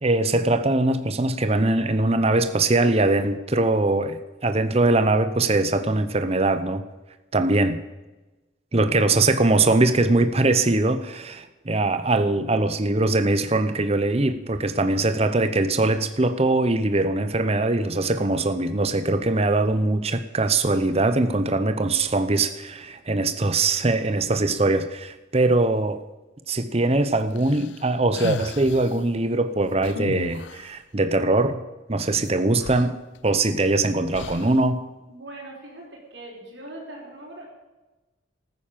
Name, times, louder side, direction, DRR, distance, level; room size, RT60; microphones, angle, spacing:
voice 1, 0.0-6.8 7.3-7.8 8.7-26.0 26.5-31.6 31.9-32.9 33.2-34.8, right 2 dB, 30° right, 10 dB, 0.8 m, -22 dB
sound 1, 27.4-29.0 29.8-30.8 32.3-32.4 32.6-33.6 34.1-34.7, left 4 dB, 65° left, 0.5 m, -35 dB
voice 2, 35.1-37.5, right 1 dB, 65° right, -2 dB, 4.7 m, -41 dB
13.5 x 9.8 x 7.4 m, 1.1 s
head